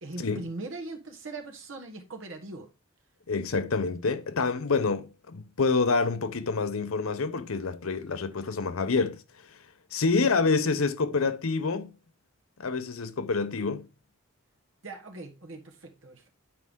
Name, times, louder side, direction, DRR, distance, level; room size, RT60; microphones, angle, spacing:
voice 1, 0.0-2.7 7.8-8.0 10.2-10.3 14.8-16.3, right 2 dB, 65° right, 1.4 m, -40 dB
voice 2, 3.3-9.2 9.9-11.9 12.6-13.8, left 4 dB, 75° left, 0.7 m, -27 dB
8.6 x 4.6 x 3.6 m
head